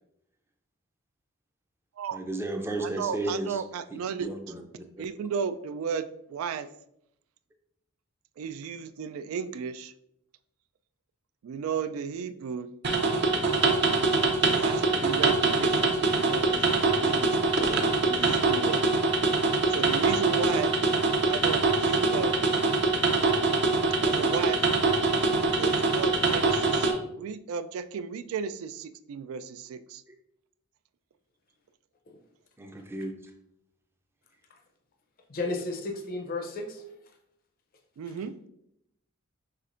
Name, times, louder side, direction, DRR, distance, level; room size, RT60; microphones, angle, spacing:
voice 1, 2.1-3.6 4.2-4.8 30.1-30.2 32.6-33.2, right 2 dB, 10° right, 4 dB, 0.4 m, -33 dB
voice 2, 2.8-4.3 5.0-6.7 8.4-9.9 11.4-12.7 14.5-17.4 18.0-18.8 19.7-20.7 21.3-22.3 24.0-24.6 25.2-30.0 38.0-38.4, right 6 dB, 85° right, 14 dB, 0.3 m, -34 dB
sound 1, 12.8-26.9, right 3 dB, 55° right, 0.7 m, -24 dB
voice 3, 35.3-36.8 38.1-38.2, left 2 dB, 45° left, 3 dB, 0.5 m, -33 dB
5.8 x 3.3 x 2.5 m, 0.79 s
head